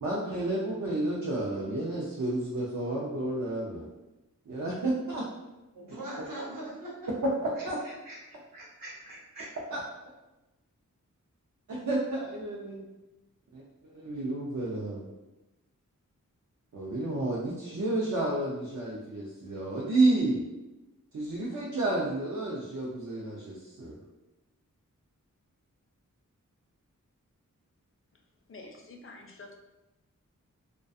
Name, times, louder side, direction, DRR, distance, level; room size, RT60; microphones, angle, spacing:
voice 1, 0.0-3.9 4.5-5.3 7.6-7.8 9.7-9.8 11.7-12.8 13.5-15.1 16.7-20.4 21.1-24.0, right 2 dB, 65° right, -5 dB, 0.5 m, -31 dB
voice 2, 5.7-7.0 7.6-9.5, right 1 dB, 90° right, -7 dB, 0.9 m, -42 dB
voice 3, 28.5-29.6, left 2 dB, 40° left, 2 dB, 0.4 m, -48 dB
2.3 x 2.2 x 2.5 m, 1.0 s
wide cardioid pair, 65°, 32 cm